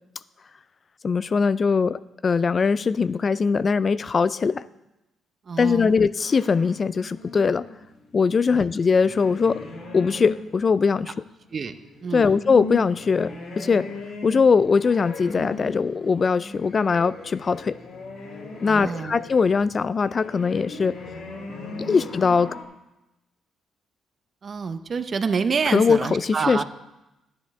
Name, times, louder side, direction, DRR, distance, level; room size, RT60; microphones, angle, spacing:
voice 1, 1.0-4.6 5.6-7.7 8.1-9.6 9.9-11.1 12.1-13.9 14.2-17.8 18.6-21.0 21.8-22.5 25.7-26.6, left 5 dB, 40° left, 17 dB, 0.3 m, -21 dB
voice 2, 5.5-6.0 8.5-8.7 11.5-11.7 12.0-12.4 18.6-19.2 24.4-26.6, right 5 dB, 45° right, 10 dB, 0.6 m, -27 dB
Amb cowboy cow dog gaucho, 6.3-10.7 11.4-22.6, left 2 dB, 65° left, 1.9 m, -38 dB
10.5 x 9.7 x 3.5 m, 0.96 s
cardioid pair, 90°, 0 cm